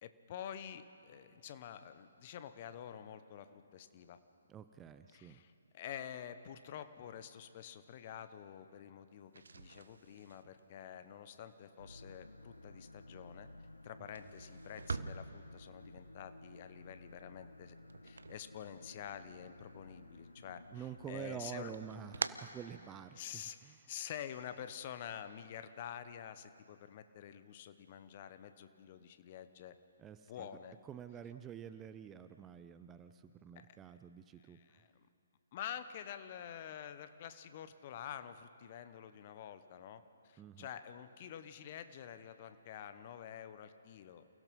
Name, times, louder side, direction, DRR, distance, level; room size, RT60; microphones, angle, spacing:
voice 1, 0.0-4.2 5.1-13.5 13.8-17.8 18.0-21.7 23.1-29.7 30.3-30.7 33.5-33.7 34.4-35.1 35.5-44.3, left 9 dB, 35° left, 11 dB, 1.0 m, -48 dB
voice 2, 4.5-5.4 20.7-23.8 30.0-30.5 30.8-34.8 40.4-40.7, right 8 dB, 15° right, 11 dB, 0.5 m, -48 dB
sound 1, 9.2-19.2 19.5-20.4 20.8-23.4, right 4 dB, 65° right, 0.8 m, -47 dB
sound 2, 11.8-22.4, left 1 dB, 85° left, 0.7 m, -55 dB
29.0 x 16.5 x 5.5 m, 2.7 s
figure-of-eight pair, 135°, 0 cm